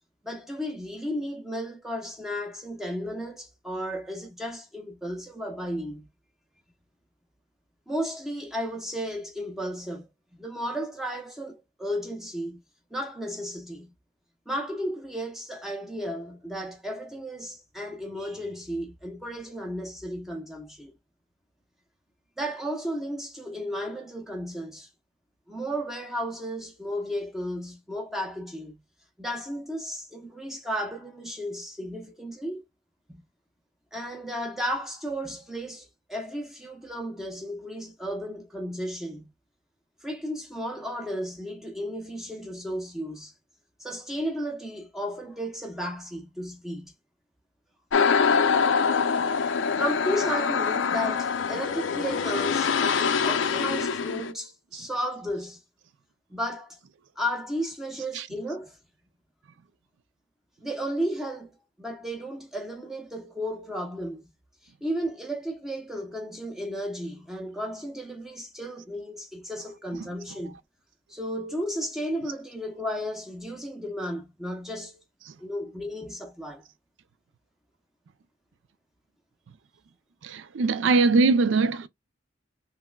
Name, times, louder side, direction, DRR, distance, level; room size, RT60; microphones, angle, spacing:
voice 1, 0.2-6.1 7.9-10.1 10.4-12.6 12.9-13.9 14.5-20.9 22.4-24.9 25.5-28.8 29.2-32.6 33.1-33.2 33.9-39.3 40.0-43.3 43.8-46.9 49.8-55.6 56.3-56.8 57.2-58.8 60.6-64.2 64.8-70.6 71.1-75.0 75.4-76.6, equal, ahead, 0.7 m, -34 dB
sound 1, 47.9-54.3, left 5 dB, 90° left, 0.5 m, -24 dB
voice 2, 80.2-81.9, right 3 dB, 80° right, 0.4 m, -21 dB
5.7 x 2.1 x 2.2 m
head